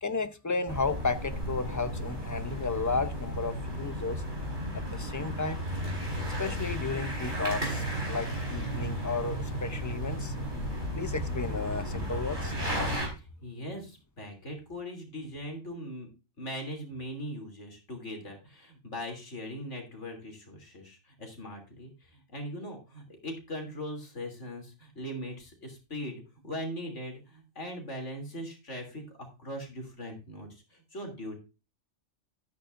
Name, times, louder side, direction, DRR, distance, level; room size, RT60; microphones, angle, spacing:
voice 1, 0.0-4.2 4.7-5.6 6.4-10.3 10.9-12.5, left 4 dB, 20° left, 0.5 m, -33 dB
sound 1, 0.7-13.1, equal, 35° right, 4.7 m, -34 dB
voice 2, 13.0-16.1 16.4-31.4, equal, 60° left, 3.4 m, -40 dB
13.0 x 9.5 x 2.6 m
omnidirectional pair, 1.4 m